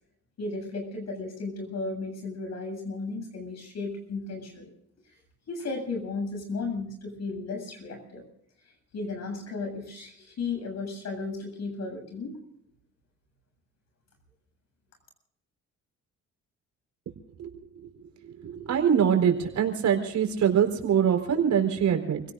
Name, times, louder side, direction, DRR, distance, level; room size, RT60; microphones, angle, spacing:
voice 1, 0.4-4.7 5.5-8.2 8.9-12.4, left 3 dB, 60° left, 5 dB, 7.7 m, -34 dB
voice 2, 18.7-22.2, right 8 dB, 70° right, 4 dB, 4.4 m, -23 dB
29.5 x 17.0 x 2.6 m, 0.76 s
cardioid pair, 90°, 30 cm